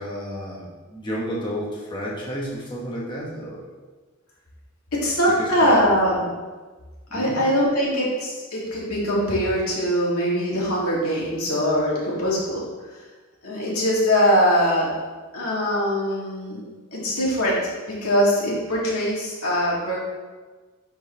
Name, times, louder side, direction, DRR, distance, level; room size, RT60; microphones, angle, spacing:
voice 1, 0.0-3.6 5.4-5.9 7.1-7.4 16.4-16.5, equal, 20° left, -5 dB, 1.0 m, -31 dB
voice 2, 4.9-6.3 7.1-12.7 13.4-14.9 15.3-16.6 16.9-20.0, equal, 80° left, -5 dB, 2.3 m, -22 dB
10.5 x 4.6 x 3.2 m, 1.3 s
head